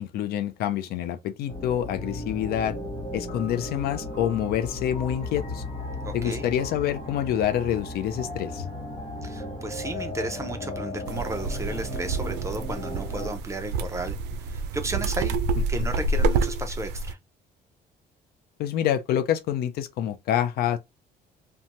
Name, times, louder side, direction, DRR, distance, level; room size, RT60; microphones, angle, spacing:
voice 1, 0.0-2.8 3.1-5.6 6.1-8.7 18.6-20.8, left 10 dB, 70° left, 0.4 m, -27 dB
sound 1, 1.5-13.3, left 2 dB, 35° left, 1.0 m, -35 dB
voice 2, 6.0-6.5 9.2-14.1 14.5-15.4 15.7-17.2, right 2 dB, 15° right, 0.6 m, -33 dB
sound 2, 11.1-17.1, right 3 dB, 85° right, 0.4 m, -28 dB
2.7 x 2.2 x 2.9 m
cardioid pair, 110°, 17 cm